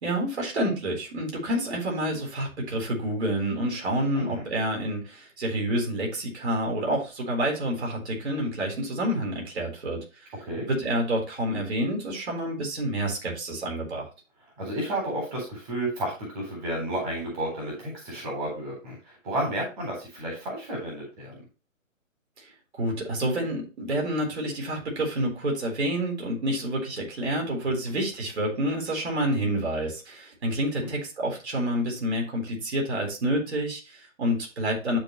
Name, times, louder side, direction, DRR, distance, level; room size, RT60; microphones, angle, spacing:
voice 1, 0.0-10.3 10.7-14.1 22.4-22.5 22.8-35.0, right 1 dB, 55° right, -1 dB, 4.1 m, -28 dB
voice 2, 4.1-4.4 10.4-10.7 14.6-21.4 27.9-28.0 30.8-30.9, right 1 dB, 35° right, -2 dB, 3.9 m, -32 dB
12.0 x 4.3 x 3.1 m, 0.31 s
figure-of-eight pair, 145°, 40 cm